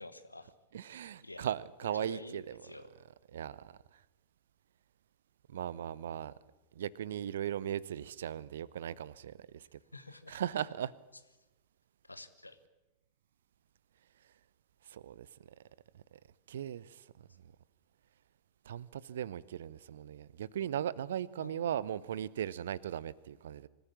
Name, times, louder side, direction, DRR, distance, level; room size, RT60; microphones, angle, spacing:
voice 1, 0.0-0.5 1.2-1.5 1.9-2.9 9.9-10.4 12.0-12.6 21.4-21.7, left 2 dB, 85° left, 12 dB, 1.3 m, -49 dB
voice 2, 0.7-2.8 3.3-4.0 5.5-6.3 6.7-9.8 10.3-10.9 14.9-15.5 15.9-16.2 16.5-17.5 18.6-23.7, right 10 dB, 60° right, 22 dB, 0.6 m, -38 dB
25.0 x 14.5 x 8.6 m, 1.0 s
figure-of-eight pair, 90°, 0 cm